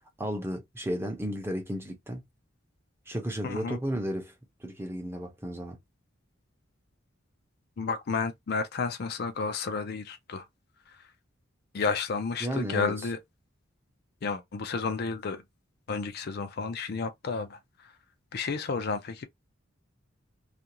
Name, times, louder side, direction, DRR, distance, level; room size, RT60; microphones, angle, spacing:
voice 1, 0.0-2.2 3.1-4.3 4.6-5.8 12.4-13.0, equal, 10° right, 0.7 m, -33 dB
voice 2, 3.4-3.8 7.8-10.4 11.7-13.2 14.2-15.4 15.9-17.6 18.3-19.3, left 4 dB, 50° left, 0.4 m, -31 dB
2.5 x 2.3 x 2.9 m
head